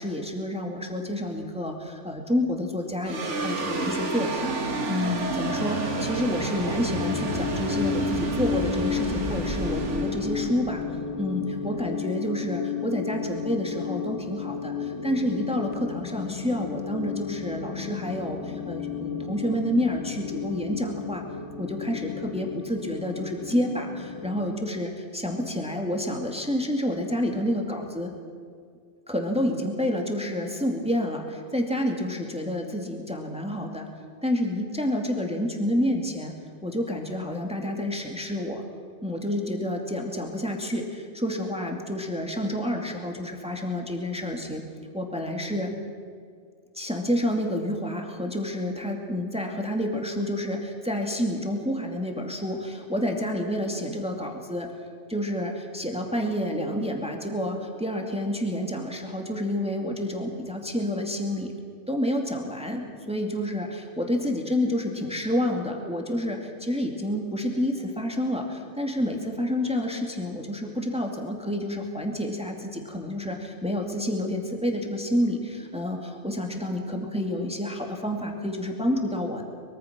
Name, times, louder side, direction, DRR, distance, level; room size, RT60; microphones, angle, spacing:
voice 1, 0.0-4.5 4.9-10.8 11.2-21.2 21.6-28.1 29.1-33.9 34.2-36.3 36.6-38.6 39.0-44.6 44.9-45.7 46.7-54.7 55.1-61.5 61.9-79.4, left 1 dB, 5° right, 2 dB, 2.3 m, -29 dB
sound 1, 3.0-11.6, right 2 dB, 80° right, 2.3 m, -30 dB
sound 2, 6.8-24.5, left 8 dB, 85° left, 2.0 m, -33 dB
23.5 x 23.0 x 6.1 m, 2.2 s
omnidirectional pair, 1.2 m